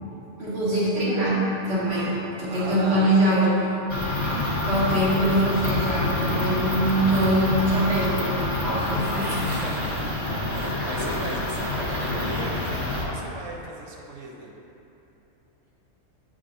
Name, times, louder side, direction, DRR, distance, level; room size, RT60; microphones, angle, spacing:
voice 1, 0.4-1.4 1.7-3.7 4.4-9.4, right 1 dB, 55° right, -11 dB, 1.8 m, -23 dB
voice 2, 2.5-3.8 9.4-10.2 10.5-14.5, right 2 dB, 75° right, -2 dB, 1.1 m, -37 dB
sound 1, 3.9-13.0, left 2 dB, 20° left, 1.4 m, -27 dB
9.6 x 3.8 x 2.6 m, 2.9 s
omnidirectional pair, 1.3 m